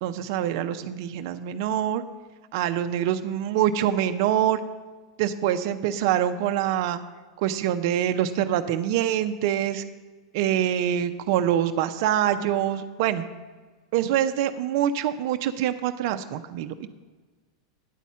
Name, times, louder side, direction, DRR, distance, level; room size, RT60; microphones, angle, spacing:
voice 1, 0.0-2.0 2.5-4.6 5.2-7.0 7.4-9.8 10.3-13.3 13.9-16.9, right 11 dB, 60° right, 8 dB, 0.5 m, -25 dB
9.1 x 4.2 x 7.3 m, 1.4 s
hypercardioid pair, 120°, 2 cm